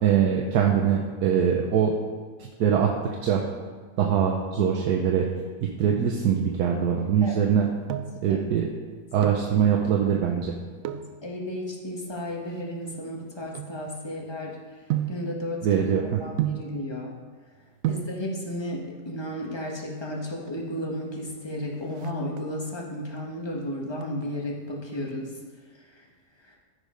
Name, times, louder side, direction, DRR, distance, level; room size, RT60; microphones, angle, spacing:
voice 1, 0.0-1.9 2.4-3.5 4.0-5.3 5.6-7.7 8.2-8.7 9.1-10.5 15.6-16.2, right 8 dB, 85° right, 0 dB, 1.4 m, -23 dB
sound 1, 7.5-8.3 9.0-9.6 10.8-11.2 11.9-14.3 14.9-15.3 16.4-16.8 17.5-17.6 17.8-18.2 19.3-19.9 20.2-20.3 20.5-20.6 21.0-21.4 21.7-22.7 23.2-23.6 24.0-25.1 25.4-25.5, right 11 dB, 70° right, 0.9 m, -32 dB
voice 2, 10.8-14.6 15.1-15.8 16.2-17.1 17.9-25.3, left 1 dB, 15° left, -2 dB, 1.4 m, -33 dB
14.5 x 5.0 x 5.1 m, 1.5 s
omnidirectional pair, 1.6 m